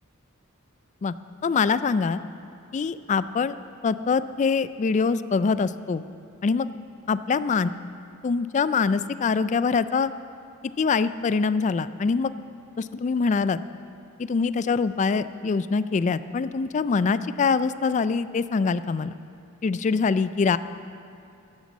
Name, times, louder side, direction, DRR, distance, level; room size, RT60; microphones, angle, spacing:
voice 1, 1.4-2.2 2.7-3.6 3.8-6.0 6.4-6.7 7.1-7.7 8.2-10.1 10.8-12.3 12.8-13.6 14.2-19.1 19.6-20.6, left 5 dB, 35° left, 14 dB, 0.3 m, -24 dB
11.5 x 11.0 x 7.3 m, 2.5 s
head